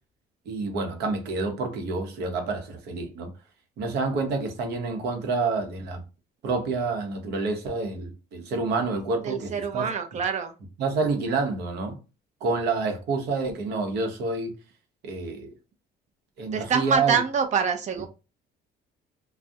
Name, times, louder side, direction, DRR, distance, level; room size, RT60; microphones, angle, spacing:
voice 1, 0.5-3.3 3.8-6.0 6.4-9.9 10.8-11.9 12.4-14.5 15.0-15.5 16.4-17.2, right 3 dB, 75° right, 0.7 m, -28 dB
voice 2, 9.2-10.5 16.5-18.1, right 6 dB, 45° right, 0.4 m, -25 dB
2.3 x 2.0 x 2.6 m
cardioid pair, 110°, 17 cm